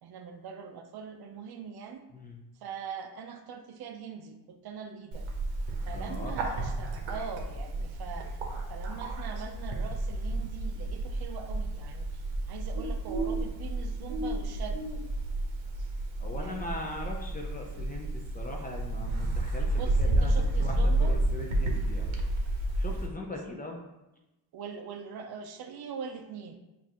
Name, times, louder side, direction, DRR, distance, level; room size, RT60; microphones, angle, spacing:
voice 1, 0.0-2.0 2.5-5.3 5.9-8.4 8.7-14.9 15.8-15.9 16.3-16.7 17.7-17.9 19.7-21.1 23.1-23.4 24.5-26.6, right 6 dB, 50° right, 6 dB, 0.5 m, -42 dB
Bird, 5.1-23.1, right 2 dB, 70° right, 0.9 m, -31 dB
voice 2, 5.9-6.3 10.4-10.5 16.2-20.3 20.6-23.8, left 2 dB, 20° left, 0 dB, 0.5 m, -40 dB
5.1 x 2.6 x 2.9 m, 0.97 s
cardioid pair, 95°, 49 cm